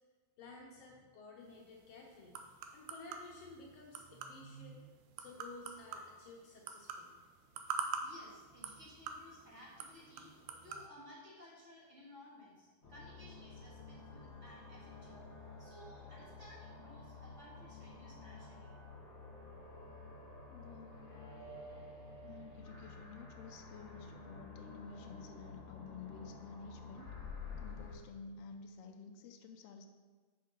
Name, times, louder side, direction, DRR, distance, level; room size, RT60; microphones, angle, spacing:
voice 1, 0.4-2.4 2.7-4.8 5.2-7.2, left 3 dB, 70° left, -2 dB, 1.6 m, -54 dB
sound 1, 1.4-10.9, right 5 dB, 80° right, 2.0 m, -46 dB
voice 2, 8.0-15.2 15.6-18.7, left 1 dB, 30° right, -6 dB, 1.4 m, -57 dB
sound 2, 12.8-28.0, left 3 dB, 40° left, 1.8 m, -51 dB
voice 3, 20.5-21.0 22.2-27.1 27.6-29.9, left 5 dB, 85° left, 3 dB, 1.4 m, -52 dB
6.1 x 5.5 x 5.1 m, 1.4 s
omnidirectional pair, 3.5 m